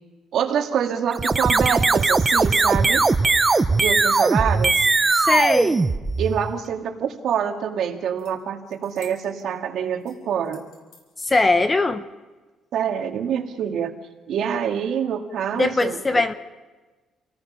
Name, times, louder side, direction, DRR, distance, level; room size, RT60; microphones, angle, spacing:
voice 1, 0.3-3.1 3.8-4.9 6.2-10.6 12.7-13.9 14.3-16.2, right 8 dB, 60° right, 3 dB, 2.2 m, -26 dB
sound 1, 1.1-6.6, right 3 dB, 20° right, 0.7 m, -19 dB
sound 2, 4.9-5.6 8.2-8.3 8.6-9.6 10.0-11.3, left 5 dB, 90° left, 4.9 m, -52 dB
voice 2, 5.1-5.8 11.2-12.1 15.6-16.3, left 2 dB, 15° left, 11 dB, 0.8 m, -20 dB
29.0 x 18.0 x 5.8 m, 1.2 s
cardioid pair, 155°, 0 cm